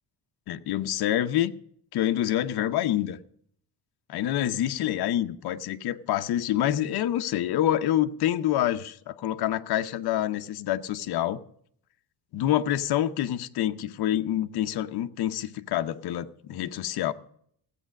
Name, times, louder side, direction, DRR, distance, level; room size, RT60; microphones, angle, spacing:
voice 1, 0.5-1.5 1.9-3.2 4.1-11.4 12.3-17.1, left 12 dB, 65° left, 0.9 m, -27 dB
15.0 x 8.3 x 6.4 m
cardioid pair, 155°, 41 cm